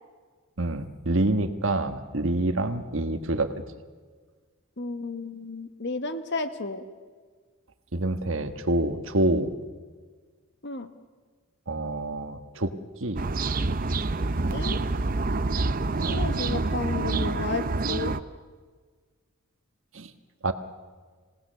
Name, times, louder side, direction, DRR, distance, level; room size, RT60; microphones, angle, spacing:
voice 1, 0.6-3.5 7.9-9.5 11.7-12.7 13.0-13.2 16.0-16.2 19.9-20.1 20.4-20.5, right 2 dB, 60° right, 8 dB, 1.4 m, -27 dB
voice 2, 4.8-6.8 10.6-10.9 14.5-14.8 16.1-18.1, left 3 dB, 50° left, 10 dB, 1.4 m, -32 dB
sound 1, 13.2-18.2, right 3 dB, 40° right, 0.7 m, -27 dB
27.0 x 18.5 x 6.8 m, 1.5 s
head